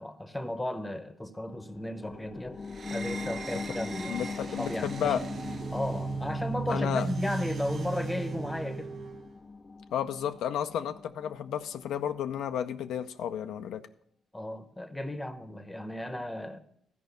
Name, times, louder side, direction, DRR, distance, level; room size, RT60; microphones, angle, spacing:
voice 1, 0.0-2.6 2.9-5.1 5.7-8.9 14.3-16.6, left 1 dB, 10° left, 11 dB, 0.8 m, -35 dB
sound 1, 1.5-12.6 13.0-13.1, left 4 dB, 30° left, 0.4 m, -41 dB
sound 2, 2.7-9.3, right 4 dB, 50° right, 0.6 m, -37 dB
voice 2, 4.0-5.2 6.7-7.1 9.9-13.8, left 9 dB, 85° left, 8 dB, 0.5 m, -32 dB
13.5 x 5.1 x 6.6 m, 0.70 s
cardioid pair, 105°, 0 cm